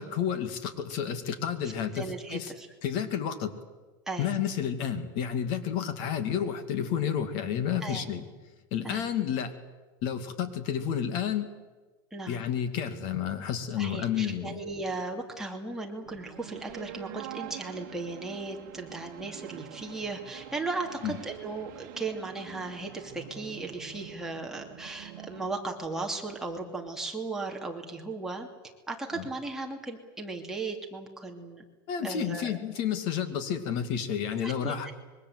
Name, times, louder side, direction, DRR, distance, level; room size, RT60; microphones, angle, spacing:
voice 1, 0.0-2.5 2.8-3.5 4.2-8.2 8.7-9.5 10.0-11.5 12.3-14.7 21.0-21.1 29.1-29.3 31.9-34.9, left 8 dB, 45° left, 10 dB, 2.3 m, -30 dB
voice 2, 2.0-2.7 4.1-4.3 7.8-8.1 8.8-9.0 12.1-12.4 13.8-28.5 28.9-31.6 32.0-32.6 34.4-34.9, right 3 dB, 5° right, 0 dB, 2.6 m, -36 dB
sound 1, 16.0-25.6, right 14 dB, 55° right, 1.5 m, -46 dB
26.0 x 23.0 x 8.1 m, 1.3 s
supercardioid pair, 160°, 11 cm